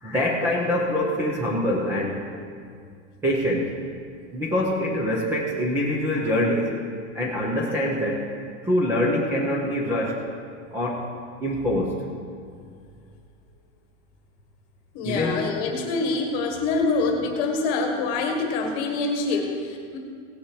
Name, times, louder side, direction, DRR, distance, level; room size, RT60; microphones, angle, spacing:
voice 1, 0.0-2.3 3.2-3.7 4.3-6.7 7.1-8.3 8.6-10.2 10.7-11.1 11.4-12.0 15.0-15.4, left 1 dB, 5° right, -4 dB, 0.7 m, -24 dB
voice 2, 14.9-20.0, left 3 dB, 30° left, 3 dB, 1.5 m, -25 dB
17.5 x 7.0 x 4.8 m, 2.2 s
supercardioid pair, 180°, 37 cm